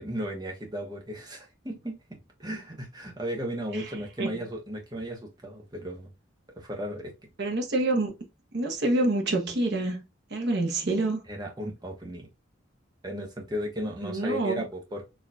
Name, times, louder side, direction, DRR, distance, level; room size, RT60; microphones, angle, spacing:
voice 1, 0.0-6.1 6.5-7.1 11.3-12.3 13.0-15.1, equal, 20° right, 1.0 m, -35 dB
voice 2, 7.4-8.1 8.5-10.0 10.3-11.2 14.0-14.6, right 2 dB, 55° right, 1.0 m, -27 dB
4.2 x 3.0 x 2.4 m
head